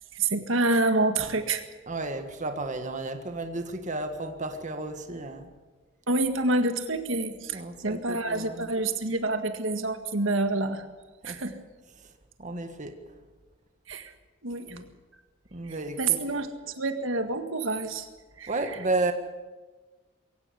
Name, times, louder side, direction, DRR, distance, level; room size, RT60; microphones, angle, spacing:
voice 1, 0.1-1.7 6.1-10.9 11.2-11.6 13.9-14.1 14.4-14.8 15.7-18.1 18.4-18.5, right 2 dB, 70° right, 8 dB, 1.8 m, -27 dB
voice 2, 1.9-5.5 7.5-8.7 11.2-11.4 12.0-12.1 12.4-13.0 14.7-14.8 15.5-16.2 18.5-19.1, right 2 dB, 40° right, 6 dB, 1.7 m, -32 dB
22.5 x 17.5 x 8.5 m, 1.3 s
head